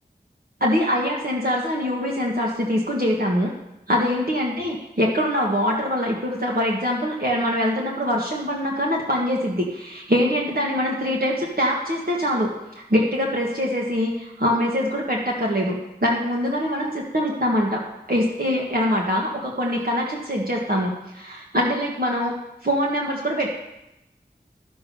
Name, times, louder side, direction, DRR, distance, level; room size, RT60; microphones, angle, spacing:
voice 1, 0.6-3.5 3.9-17.8 18.1-22.3 22.6-23.5, equal, 55° right, -2 dB, 1.6 m, -23 dB
12.5 x 7.0 x 5.4 m, 0.90 s
wide cardioid pair, 45°, 18 cm